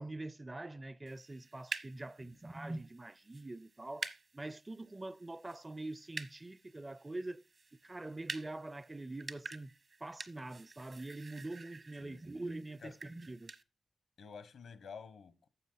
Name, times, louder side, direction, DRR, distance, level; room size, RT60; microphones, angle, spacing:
voice 1, 0.0-7.4 7.8-9.7 10.0-13.5, right 2 dB, 25° right, 0.5 m, -44 dB
sound 1, 1.1-13.6, right 4 dB, 60° right, 1.1 m, -49 dB
voice 2, 14.2-15.5, left 6 dB, 80° left, 1.1 m, -50 dB
11.0 x 7.3 x 4.0 m
supercardioid pair, 45°, 0 cm